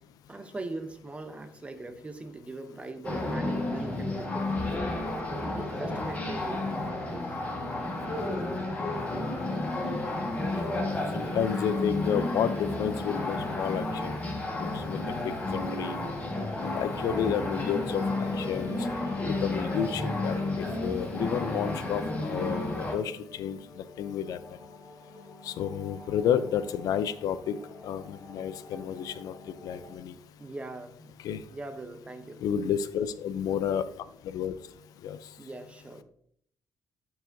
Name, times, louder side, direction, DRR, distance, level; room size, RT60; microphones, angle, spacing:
voice 1, 0.3-4.9 5.4-7.3 30.4-31.1 31.5-32.4 35.4-36.0, right 2 dB, 20° right, 8 dB, 0.7 m, -41 dB
sound 1, 3.0-22.9, left 2 dB, 25° left, 1.5 m, -31 dB
sound 2, 10.3-30.0, left 2 dB, 60° left, 3.1 m, -49 dB
voice 2, 11.1-14.1 14.7-16.0 16.6-18.8 19.4-23.6 24.0-24.4 25.4-27.6 27.8-29.3 29.6-30.1 31.2-31.4 32.4-33.9 34.3-34.5 35.0-35.2, left 8 dB, 75° left, 14 dB, 0.5 m, -31 dB
12.0 x 4.7 x 2.6 m, 0.67 s
cardioid pair, 130°, 6 cm